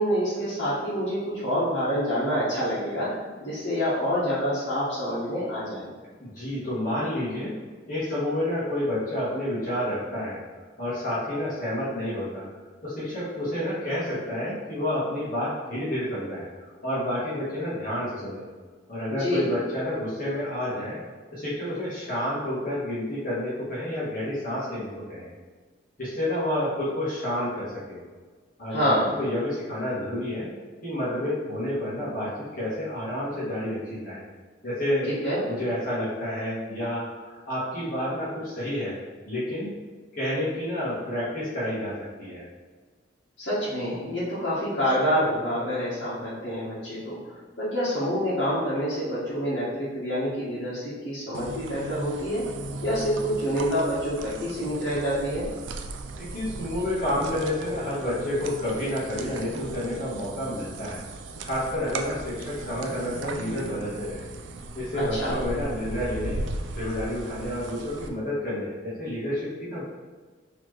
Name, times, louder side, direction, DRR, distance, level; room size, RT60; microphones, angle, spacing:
voice 1, 0.0-3.1 3.4-5.9 19.1-19.4 28.7-29.1 35.1-35.4 43.4-52.4 52.8-55.5 64.9-65.4, equal, 85° left, -12 dB, 1.2 m, -27 dB
voice 2, 6.2-7.5 7.9-10.4 10.8-12.5 12.8-16.4 16.8-18.4 18.9-21.0 21.3-25.3 26.0-28.0 28.6-30.5 30.8-34.2 34.6-35.1 35.5-39.0 39.3-39.7 40.1-42.5 56.2-61.0 61.4-64.3 64.7-66.4 66.7-69.8, left 1 dB, 50° left, -9 dB, 1.3 m, -29 dB
sound 1, 51.3-68.1, right 2 dB, 85° right, 0.4 m, -37 dB
4.1 x 3.0 x 3.1 m, 1.4 s
head